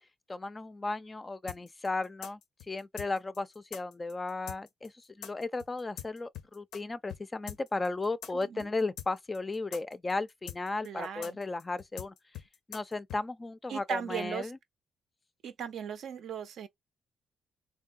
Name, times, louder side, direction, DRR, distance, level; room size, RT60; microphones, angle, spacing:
voice 1, 0.3-2.4 2.7-4.9 5.2-12.1 12.7-14.6, left 3 dB, 25° left, 0.3 m, -35 dB
sound 1, 1.5-6.8 7.1-7.2 7.5-13.2, left 9 dB, 80° left, 0.5 m, -44 dB
voice 2, 8.3-8.6 10.8-11.4 13.7-14.5 15.4-16.7, right 8 dB, 70° right, 0.5 m, -38 dB
3.7 x 2.0 x 2.4 m
cardioid pair, 90°, 0 cm